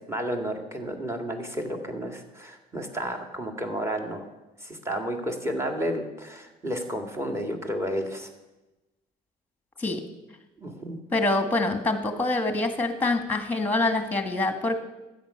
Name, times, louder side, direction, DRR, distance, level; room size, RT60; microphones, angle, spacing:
voice 1, 0.1-4.3 4.6-8.3 10.6-11.0, equal, 15° right, 4 dB, 2.0 m, -31 dB
voice 2, 11.1-14.8, left 2 dB, 10° left, 7 dB, 1.6 m, -25 dB
13.0 x 8.7 x 5.6 m, 1.0 s
cardioid pair, 110°, 17 cm